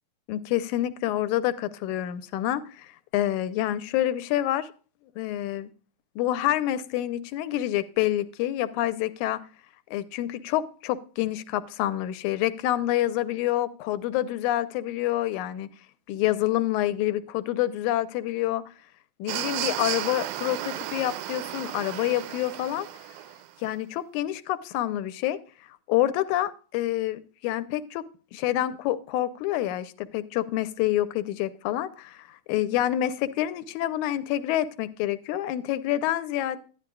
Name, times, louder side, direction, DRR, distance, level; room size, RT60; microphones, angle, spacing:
voice 1, 0.3-4.7 5.2-5.7 6.2-9.4 9.9-15.7 16.1-18.6 19.2-22.9 23.6-25.4 25.9-28.0 28.3-36.6, left 13 dB, 85° left, 14 dB, 2.1 m, -27 dB
sound 1, 19.3-23.5, right 13 dB, 85° right, 2.0 m, -34 dB
12.0 x 10.5 x 2.3 m, 0.38 s
omnidirectional pair, 3.4 m